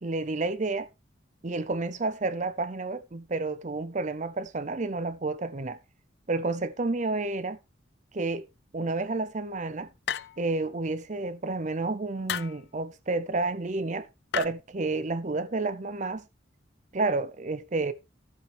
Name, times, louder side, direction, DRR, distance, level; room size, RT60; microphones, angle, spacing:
voice 1, 0.0-0.9 1.4-5.8 6.3-7.6 8.1-8.5 8.7-9.9 10.4-14.1 14.3-16.3 16.9-17.9, right 3 dB, 40° right, 0.6 m, -30 dB
sound 1, 10.1-10.6 12.3-12.6 14.3-14.5, left 9 dB, 55° left, 0.5 m, -32 dB
13.0 x 7.4 x 3.3 m
head